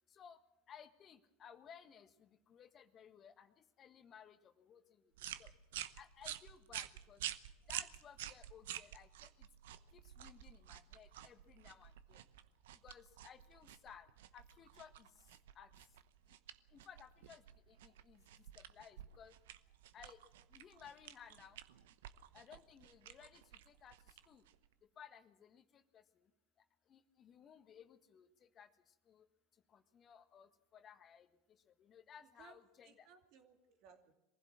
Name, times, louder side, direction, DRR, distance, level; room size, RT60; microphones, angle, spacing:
voice 1, 0.1-0.4 0.7-5.5 6.0-7.3 7.6-9.5 9.9-12.3 12.7-15.3 15.5-15.7 16.3-16.4 16.7-19.3 19.9-20.2 20.5-21.6 22.3-24.5 24.9-26.3 26.6-29.3 29.5-33.1, left 8 dB, 40° left, 9 dB, 1.5 m, -59 dB
sound 1, 5.2-24.7, right 12 dB, 75° right, 0.9 m, -50 dB
voice 2, 32.2-32.6 32.8-34.1, right 7 dB, 60° right, 5 dB, 2.6 m, -63 dB
23.0 x 15.5 x 7.5 m, 0.97 s
hypercardioid pair, 85°, 0 cm